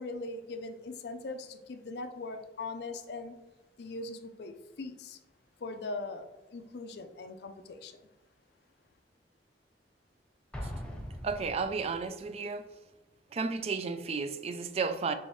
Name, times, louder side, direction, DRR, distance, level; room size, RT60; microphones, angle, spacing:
voice 1, 0.0-3.3 3.8-5.2 5.6-8.0, left 3 dB, 65° left, 0.4 m, -40 dB
Explosion, 10.5-12.2, equal, 5° left, 0.6 m, -41 dB
voice 2, 11.2-12.6 13.3-15.1, right 4 dB, 35° right, 0.3 m, -33 dB
5.6 x 3.0 x 3.1 m
head